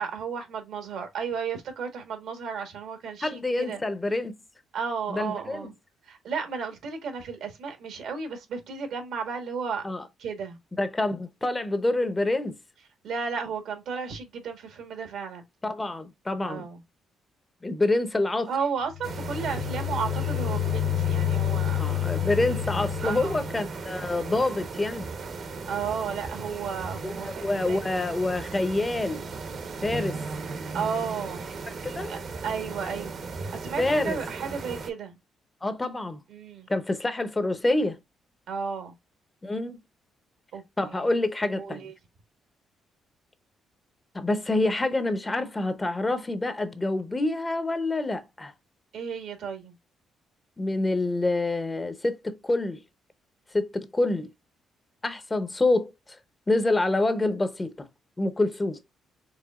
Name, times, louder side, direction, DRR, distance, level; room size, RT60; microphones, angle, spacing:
voice 1, 0.0-3.8 4.7-5.7 6.0-9.8 10.2-10.6 13.0-15.4 16.4-16.8 18.5-21.8 23.0-23.4 25.4-27.4 27.7-27.9 30.7-31.4 32.1-33.2 33.5-35.2 36.3-36.7 38.5-38.9 40.5-41.1 41.5-41.9 48.9-49.7, right 6 dB, 80° right, 1.4 m, -33 dB
voice 2, 3.2-4.3 5.1-5.7 9.8-10.0 10.8-12.6 15.6-16.7 17.6-18.5 21.8-25.1 27.0-29.2 29.8-30.2 31.8-32.1 33.8-34.2 35.6-36.2 36.7-38.0 39.4-39.8 40.8-41.9 44.1-48.5 50.6-52.8 53.5-54.3 55.0-55.9 56.5-57.9 58.2-58.8, left 2 dB, 20° left, 0.7 m, -27 dB
sound 1, 18.9-23.6, left 12 dB, 55° left, 0.5 m, -29 dB
sound 2, 19.0-34.9, right 4 dB, 55° right, 0.9 m, -36 dB
4.8 x 3.3 x 2.3 m
cardioid pair, 90°, 0 cm